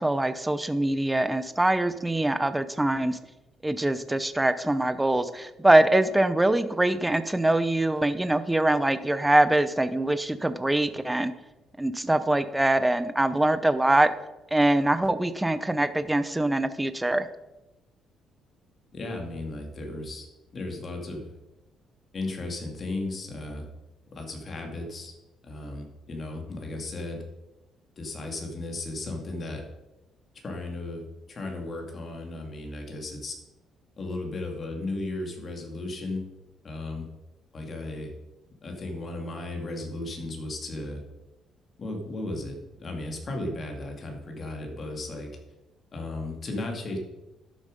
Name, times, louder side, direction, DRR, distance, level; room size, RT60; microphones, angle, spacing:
voice 1, 0.0-3.2 3.6-11.3 11.8-14.1 14.5-17.3, right 1 dB, 10° right, 12 dB, 0.6 m, -23 dB
voice 2, 18.9-20.3 20.5-21.2 22.1-23.7 24.1-25.1 25.4-27.2 28.0-29.6 30.4-31.0 31.3-33.3 34.0-36.2 36.6-37.1 37.5-38.1 38.6-41.0 41.8-45.3 45.9-47.0, left 2 dB, 35° left, 2 dB, 2.4 m, -35 dB
12.0 x 7.2 x 5.3 m, 1.0 s
cardioid pair, 125°, 0 cm